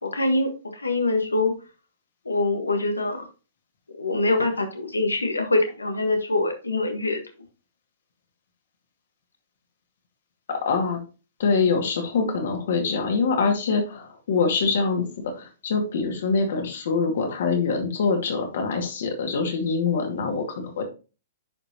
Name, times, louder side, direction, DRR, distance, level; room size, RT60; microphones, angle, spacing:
voice 1, 0.0-1.5 2.2-3.3 4.0-7.2, left 2 dB, 90° left, 6 dB, 1.5 m, -24 dB
voice 2, 10.5-11.0 11.4-15.1 15.4-20.8, left 4 dB, 60° left, 3 dB, 2.2 m, -24 dB
10.0 x 5.0 x 2.9 m, 0.33 s
figure-of-eight pair, 115°, 0 cm